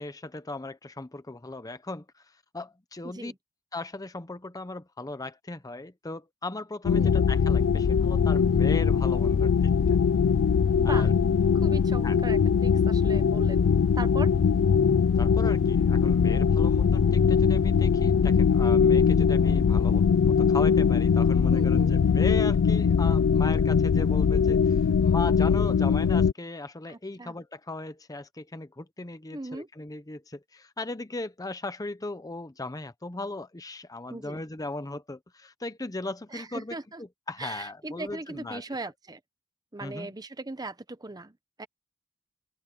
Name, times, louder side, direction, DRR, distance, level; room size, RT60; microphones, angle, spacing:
voice 1, 0.0-3.3 3.7-10.0 10.8-11.1 12.0-12.2 15.1-36.8 37.3-38.6 39.8-40.1, left 2 dB, 15° left, 0.7 m, -37 dB
voice 2, 3.0-3.3 6.9-7.2 10.8-11.1 11.5-14.3 21.5-21.9 26.9-27.4 29.3-29.7 34.1-34.4 36.3-37.0 37.4-39.2 39.7-41.7, right 2 dB, 20° right, 0.9 m, -39 dB
sound 1, 6.8-26.3, left 6 dB, 60° left, 0.4 m, -21 dB
open air
head